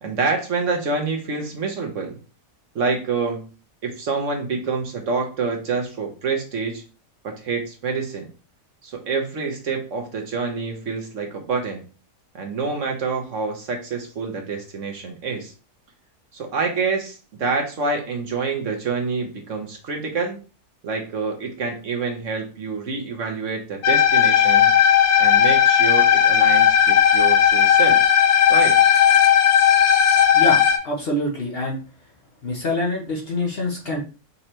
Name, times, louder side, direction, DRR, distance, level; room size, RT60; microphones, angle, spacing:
voice 1, 0.0-2.1 2.7-3.4 3.8-6.8 7.2-8.3 8.8-11.8 12.3-15.5 16.3-20.4 20.8-24.7 25.2-28.0 28.5-28.8, right 4 dB, 55° right, 2 dB, 1.2 m, -27 dB
sound 1, 23.8-30.8, left 9 dB, 75° left, 1.2 m, -15 dB
voice 2, 30.3-31.8 32.4-34.0, left 1 dB, 45° left, -1 dB, 0.9 m, -25 dB
5.4 x 3.1 x 2.9 m, 0.34 s
omnidirectional pair, 1.6 m